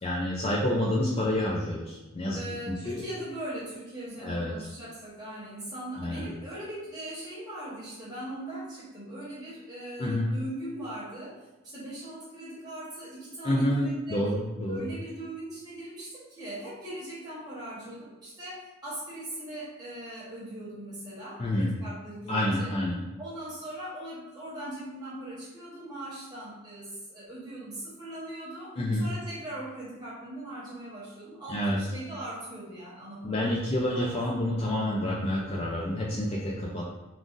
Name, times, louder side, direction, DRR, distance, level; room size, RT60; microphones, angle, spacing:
voice 1, 0.0-2.4 2.7-3.0 4.2-4.5 6.0-6.3 10.0-10.3 13.4-14.9 21.4-21.7 22.3-23.0 28.8-29.1 31.5-31.8 33.2-36.9, left 1 dB, 25° left, -4 dB, 0.3 m, -28 dB
voice 2, 2.3-14.2 14.7-22.8 23.2-34.1, right 1 dB, 20° right, -9 dB, 1.1 m, -40 dB
3.7 x 2.4 x 2.5 m, 1.1 s
head